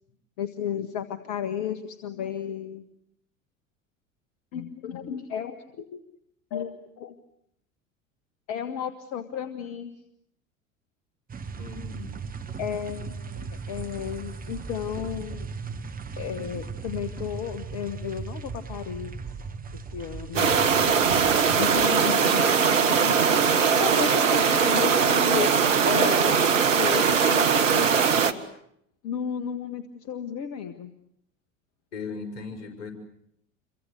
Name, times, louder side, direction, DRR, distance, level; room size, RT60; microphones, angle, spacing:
voice 1, 0.4-2.9 4.5-6.0 6.5-7.2 8.5-9.9 12.6-15.5 16.2-19.2 19.7-20.6 21.6-22.8 23.0-25.5 25.8-26.3 26.8-28.0 29.0-30.9, left 8 dB, 50° left, 10 dB, 1.8 m, -33 dB
sound 1, 11.3-21.9, right 5 dB, 20° right, 1.6 m, -37 dB
voice 2, 11.6-12.3 20.9-21.0 21.8-22.2 31.9-32.9, left 4 dB, 65° left, 7 dB, 6.6 m, -39 dB
sound 2, 20.4-28.3, right 6 dB, 70° right, 1.7 m, -21 dB
28.5 x 24.0 x 8.3 m, 0.73 s
figure-of-eight pair, 75°, 39 cm